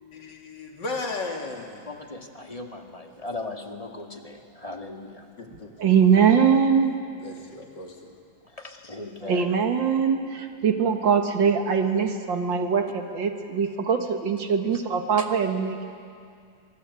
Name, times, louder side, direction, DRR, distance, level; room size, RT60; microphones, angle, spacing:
voice 1, 0.1-1.9 5.4-5.7 7.2-8.1 8.6-8.8, left 3 dB, 60° left, 2 dB, 3.2 m, -35 dB
voice 2, 1.9-5.3 8.4-9.5 15.2-15.3, left 2 dB, 20° left, 3 dB, 1.9 m, -38 dB
voice 3, 5.5-7.0 9.2-15.8, right 6 dB, 65° right, 5 dB, 2.3 m, -22 dB
24.0 x 23.0 x 9.7 m, 2.3 s
omnidirectional pair, 2.2 m